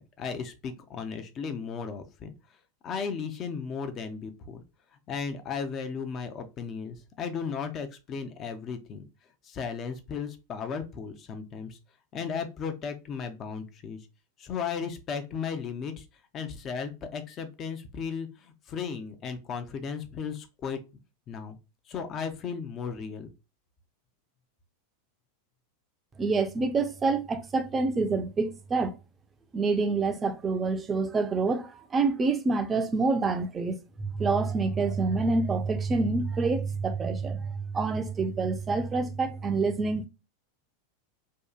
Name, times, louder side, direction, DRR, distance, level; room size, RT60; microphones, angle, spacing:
voice 1, 0.0-2.3 2.8-4.6 5.1-9.0 9.4-11.8 12.1-14.0 14.4-16.1 16.3-20.8 21.3-21.6 21.9-23.3, left 6 dB, 35° left, 0.5 m, -35 dB
voice 2, 26.2-28.9 29.5-40.1, right 4 dB, 25° right, 0.5 m, -27 dB
2.7 x 2.3 x 2.2 m
hypercardioid pair, 100°, 0 cm